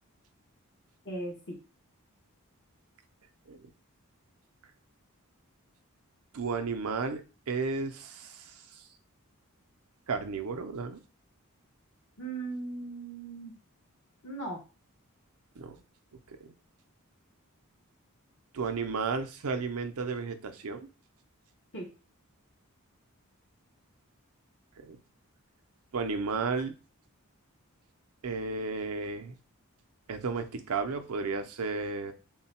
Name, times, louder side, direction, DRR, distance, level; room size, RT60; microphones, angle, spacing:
voice 1, 1.0-1.6 12.2-13.5 14.2-14.6 21.7-21.9, right 2 dB, 55° left, -1 dB, 0.9 m, -38 dB
voice 2, 6.3-8.8 10.1-11.0 15.6-15.8 16.3-16.5 18.5-20.9 24.8-25.0 25.9-26.7 28.2-29.3 30.1-32.1, right 4 dB, 75° right, 6 dB, 0.5 m, -33 dB
3.7 x 2.2 x 4.2 m, 0.32 s
head